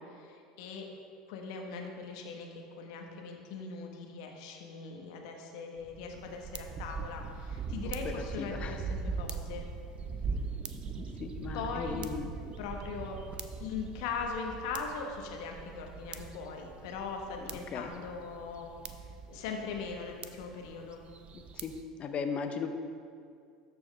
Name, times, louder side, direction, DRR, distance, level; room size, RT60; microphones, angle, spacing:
voice 1, 0.1-0.9 1.3-9.7 11.5-12.1 12.6-13.2 13.6-18.7 19.3-21.0, left 5 dB, 70° left, 2 dB, 1.1 m, -40 dB
sound 1, 5.8-21.8, right 5 dB, 35° right, 0.5 m, -41 dB
voice 2, 8.0-8.8 11.2-12.3 17.4-17.9 21.6-21.7 22.0-22.7, left 6 dB, 40° left, 7 dB, 0.7 m, -37 dB
13.0 x 4.6 x 3.3 m, 2.4 s
hypercardioid pair, 80°, 3 cm